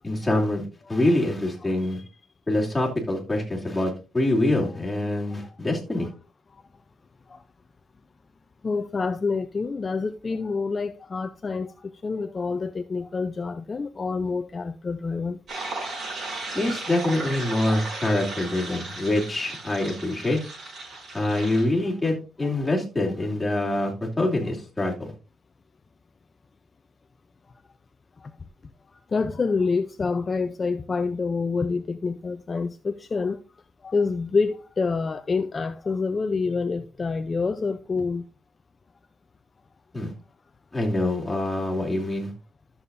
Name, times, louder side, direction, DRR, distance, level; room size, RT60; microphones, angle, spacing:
voice 1, 0.0-2.0 2.5-6.1 16.5-20.4 21.1-23.9 24.2-25.1 39.9-40.1 40.7-42.3, left 1 dB, 10° left, 2.9 m, -25 dB
voice 2, 8.6-11.7 12.0-15.4 18.7-18.8 29.1-33.4 33.8-38.2, left 4 dB, 30° left, 0.5 m, -27 dB
sound 1, 15.5-21.6, right 2 dB, 50° right, 6.0 m, -35 dB
13.0 x 7.0 x 2.6 m
cardioid pair, 135°, 0 cm